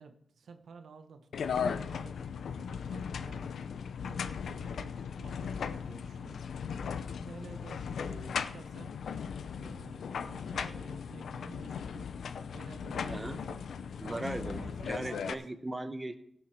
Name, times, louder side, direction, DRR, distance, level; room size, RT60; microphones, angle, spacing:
voice 1, 0.0-3.7 4.0-6.5 6.8-9.2 9.5-15.3, right 5 dB, 80° right, 7 dB, 1.2 m, -52 dB
sound 1, 1.3-15.3, left 6 dB, 80° left, 0.6 m, -37 dB
voice 2, 13.1-13.4 14.0-16.1, right 2 dB, 20° right, 9 dB, 0.9 m, -38 dB
16.0 x 8.0 x 4.5 m, 0.69 s
cardioid pair, 85°, 0 cm